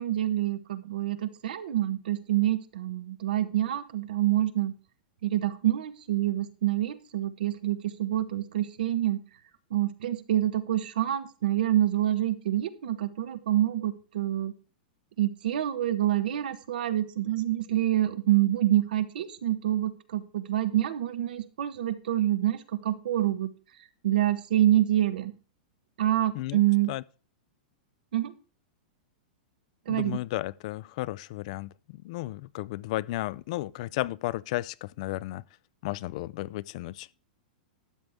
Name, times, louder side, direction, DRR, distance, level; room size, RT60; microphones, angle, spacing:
voice 1, 0.0-4.7 5.2-9.2 9.7-14.5 15.2-23.5 24.0-25.3 26.0-26.9 28.1-28.3 29.9-30.2, right 13 dB, 75° right, 1.1 m, -27 dB
voice 2, 29.9-35.4 35.8-37.1, left 17 dB, 50° left, 0.3 m, -34 dB
12.5 x 7.8 x 3.5 m
supercardioid pair, 155°, 5 cm